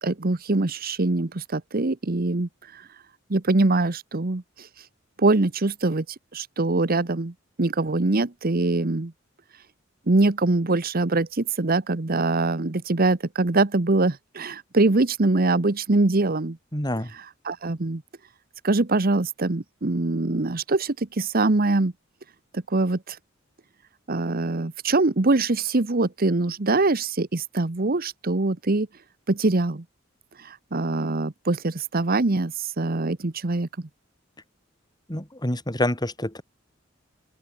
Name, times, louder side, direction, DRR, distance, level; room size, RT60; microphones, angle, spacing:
voice 1, 0.0-2.9 3.3-4.7 5.2-9.1 10.1-16.6 17.1-18.0 18.6-21.9 22.5-23.2 24.1-28.9 29.3-29.8 30.4-33.7, right 2 dB, 50° right, 1.1 m, -23 dB
voice 2, 16.7-17.1 35.1-36.4, left 1 dB, 20° left, 5.5 m, -27 dB
open air
head